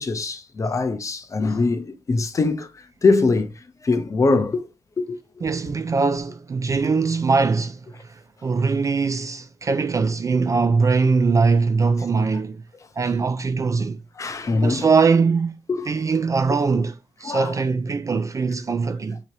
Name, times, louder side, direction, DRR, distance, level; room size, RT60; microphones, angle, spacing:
voice 1, 0.0-2.7 3.0-3.5 3.8-4.7 5.0-5.2 14.2-14.9 15.7-15.9 17.2-17.5, left 3 dB, 30° left, 0.6 m, -22 dB
voice 2, 5.4-12.6 13.0-14.0 14.5-15.6 15.9-19.2, right 4 dB, 30° right, 0.3 m, -21 dB
3.8 x 2.9 x 4.6 m
wide cardioid pair, 155°, 11 cm